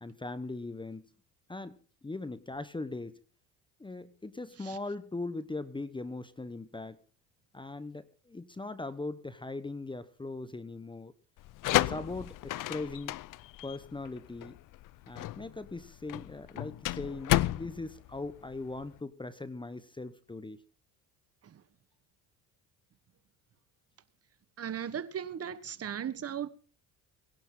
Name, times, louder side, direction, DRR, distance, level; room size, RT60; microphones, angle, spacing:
voice 1, 0.0-1.1 1.5-3.2 3.8-7.0 7.5-11.1 11.7-13.2 13.6-14.6 15.1-20.6, left 2 dB, 10° left, 1.0 m, -40 dB
sound 1, 11.4-19.0, left 16 dB, 55° left, 0.6 m, -32 dB
voice 2, 24.6-26.5, right 8 dB, 35° right, 1.3 m, -37 dB
21.5 x 11.0 x 3.9 m
supercardioid pair, 95°, 39 cm